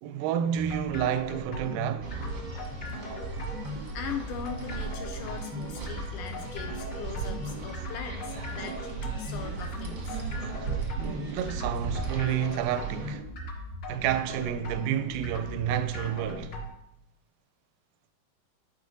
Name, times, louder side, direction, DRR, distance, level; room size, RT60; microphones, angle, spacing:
voice 1, 0.0-2.1 11.0-13.2 13.9-16.6, right 10 dB, 90° right, 2.3 m, -30 dB
sound 1, 0.6-16.7, left 1 dB, 40° left, 1.7 m, -38 dB
sound 2, 2.0-13.1, right 5 dB, 60° right, 1.1 m, -37 dB
voice 2, 3.9-8.8 9.2-10.4, left 7 dB, 80° left, 1.9 m, -40 dB
12.0 x 5.1 x 3.9 m
omnidirectional pair, 4.0 m